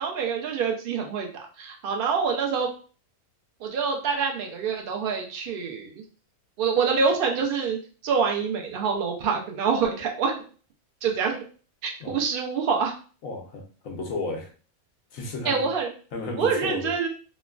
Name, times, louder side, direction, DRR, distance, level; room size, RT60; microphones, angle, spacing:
voice 1, 0.0-2.7 3.6-6.0 6.6-7.8 8.0-10.4 11.0-11.4 11.8-12.9 15.5-15.9 16.4-17.1, right 5 dB, 80° right, 2 dB, 0.4 m, -26 dB
voice 2, 13.2-14.5 15.1-15.7 16.1-16.9, left 2 dB, 70° left, 1 dB, 1.1 m, -33 dB
3.0 x 2.2 x 2.4 m, 0.39 s
omnidirectional pair, 1.5 m